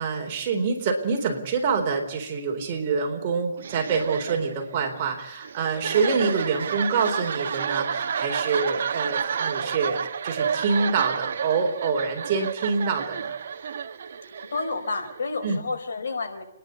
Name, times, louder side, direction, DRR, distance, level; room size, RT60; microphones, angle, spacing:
voice 1, 0.0-13.4 15.4-15.6, right 5 dB, 30° right, 2 dB, 4.0 m, -26 dB
sound 1, 3.6-15.3, right 7 dB, 55° right, 1.5 m, -30 dB
voice 2, 14.4-16.4, left 3 dB, 75° left, 5 dB, 5.0 m, -30 dB
30.0 x 11.0 x 8.1 m, 0.86 s
hypercardioid pair, 165°, 0 cm